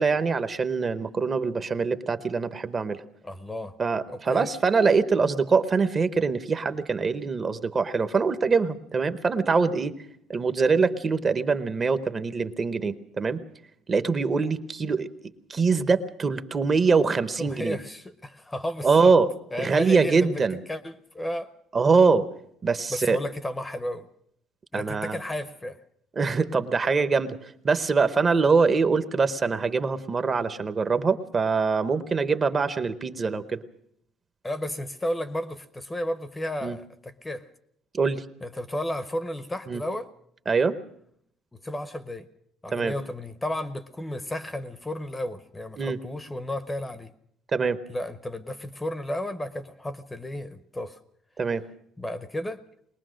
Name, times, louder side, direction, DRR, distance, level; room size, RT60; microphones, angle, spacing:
voice 1, 0.0-3.0 3.8-10.0 10.3-13.4 13.9-15.1 15.5-17.8 18.8-19.3 19.6-20.6 21.7-22.3 22.6-23.2 24.7-25.2 26.2-27.4 27.6-33.6 36.6-36.8 37.9-38.2 39.7-39.8 40.5-40.8 42.7-42.9 45.8-46.0 47.5-47.8 51.4-51.6, right 4 dB, 25° right, 11 dB, 0.8 m, -23 dB
voice 2, 3.2-3.7 4.1-4.5 17.4-19.1 19.5-20.4 20.7-21.5 22.9-24.1 24.7-25.8 34.4-37.5 38.4-40.1 41.5-42.3 42.6-47.1 47.9-51.0 52.0-52.6, left 1 dB, 10° left, 12 dB, 0.7 m, -33 dB
21.5 x 19.5 x 6.3 m, 0.72 s
cardioid pair, 165°, 0 cm